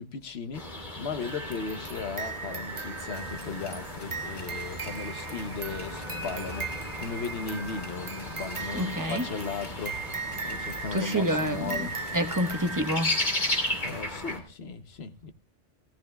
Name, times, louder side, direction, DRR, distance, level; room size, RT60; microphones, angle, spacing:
voice 1, 0.0-10.0 10.4-11.9 13.8-15.3, left 5 dB, 60° left, 1.0 m, -36 dB
sound 1, 0.5-14.4, left 1 dB, 40° left, 2.7 m, -36 dB
sound 2, 1.2-13.8, right 5 dB, 40° right, 0.4 m, -39 dB
sound 3, 3.1-14.0, left 1 dB, 25° left, 0.8 m, -47 dB
voice 2, 8.7-9.3 10.9-13.1, equal, 15° right, 0.9 m, -28 dB
16.5 x 13.5 x 2.3 m
omnidirectional pair, 1.2 m